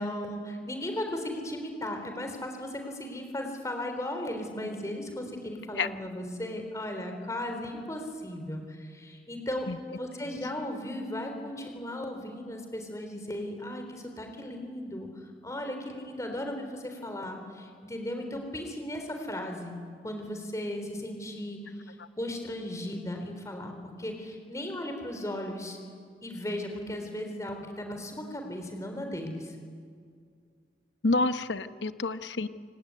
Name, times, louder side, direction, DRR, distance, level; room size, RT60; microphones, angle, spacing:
voice 1, 0.0-9.7 10.0-15.1 15.4-19.8 20.0-23.7 24.0-25.8 26.2-29.5, left 1 dB, 20° left, 4 dB, 3.6 m, -36 dB
voice 2, 31.0-32.5, left 3 dB, 85° left, 12 dB, 1.0 m, -28 dB
27.0 x 18.5 x 9.6 m, 2.1 s
head